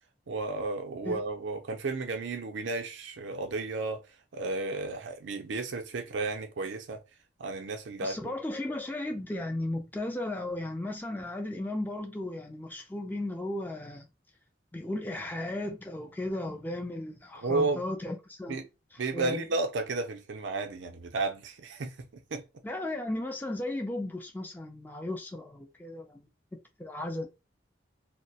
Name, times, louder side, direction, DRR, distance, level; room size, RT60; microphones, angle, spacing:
voice 1, 0.3-4.0 4.3-7.0 7.4-8.2 17.4-17.8 18.5-18.6 19.0-22.4, right 3 dB, 80° right, 0.5 m, -33 dB
voice 2, 8.0-14.1 14.7-18.6 18.9-19.5 22.6-26.3 26.8-27.3, left 1 dB, 10° left, 0.3 m, -35 dB
2.3 x 2.0 x 2.6 m
head